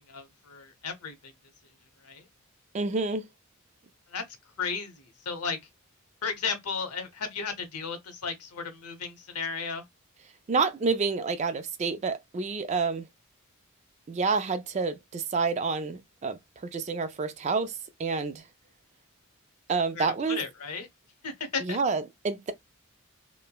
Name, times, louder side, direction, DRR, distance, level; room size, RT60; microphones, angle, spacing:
voice 1, 0.1-1.2 2.0-2.2 4.1-4.2 4.6-5.6 6.2-9.8 19.9-20.9 21.2-21.8, left 5 dB, 85° left, 0.8 m, -34 dB
voice 2, 2.7-3.3 10.5-13.0 14.1-16.4 16.7-17.7 18.0-18.4 19.7-20.4 21.6-22.5, right 4 dB, 30° right, 0.3 m, -28 dB
3.1 x 2.1 x 2.2 m
head